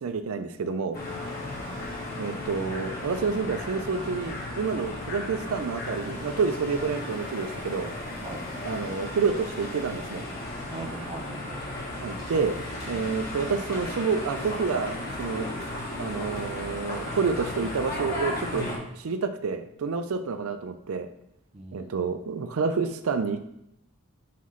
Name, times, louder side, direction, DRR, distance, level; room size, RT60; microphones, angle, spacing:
voice 1, 0.0-1.0 2.2-7.9 8.6-10.3 12.0-12.6 12.9-15.5 16.0-18.7 18.9-21.1 21.7-23.5, right 5 dB, 80° right, 8 dB, 0.4 m, -29 dB
sound 1, 0.9-18.8, left 1 dB, 45° left, 1.4 m, -35 dB
voice 2, 7.9-8.4 10.7-11.6 21.5-21.9, right 2 dB, 30° right, 2 dB, 0.6 m, -40 dB
5.7 x 5.5 x 3.2 m, 0.79 s
head